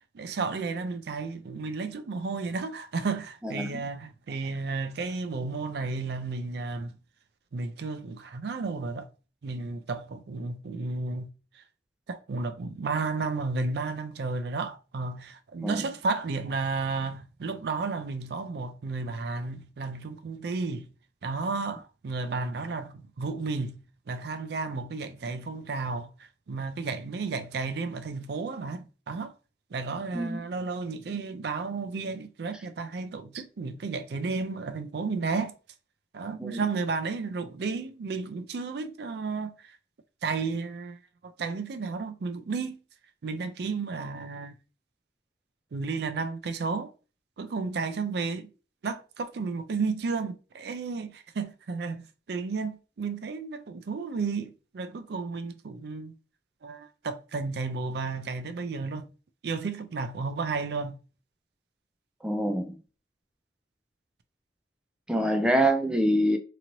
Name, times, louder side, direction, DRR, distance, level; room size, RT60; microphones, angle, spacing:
voice 1, 0.1-7.0 7.5-9.1 9.4-11.3 11.6-11.7 12.1-20.9 21.2-23.8 24.1-26.1 26.5-29.3 29.7-35.5 36.1-39.8 40.2-42.8 43.2-44.6 45.7-46.9 47.4-48.5 48.8-56.1 56.6-59.1 59.4-61.0, right 4 dB, 65° right, 0.4 m, -33 dB
voice 2, 30.1-30.5 36.4-36.6 62.2-62.8 65.1-66.4, right 1 dB, 5° right, 0.4 m, -25 dB
3.0 x 2.9 x 2.6 m
head